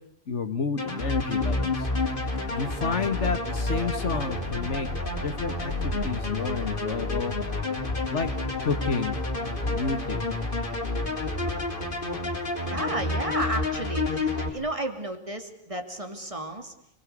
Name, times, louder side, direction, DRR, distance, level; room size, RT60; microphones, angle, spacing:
voice 1, 0.3-1.7 2.5-4.9 5.2-7.3 8.1-8.3 8.6-9.2 9.4-10.3, left 4 dB, 65° left, 10 dB, 1.9 m, -30 dB
sound 1, 0.8-14.5, left 2 dB, 45° left, 4.0 m, -29 dB
voice 2, 12.6-16.7, right 1 dB, 25° right, 6 dB, 2.9 m, -33 dB
28.0 x 20.5 x 8.4 m, 0.74 s
omnidirectional pair, 1.3 m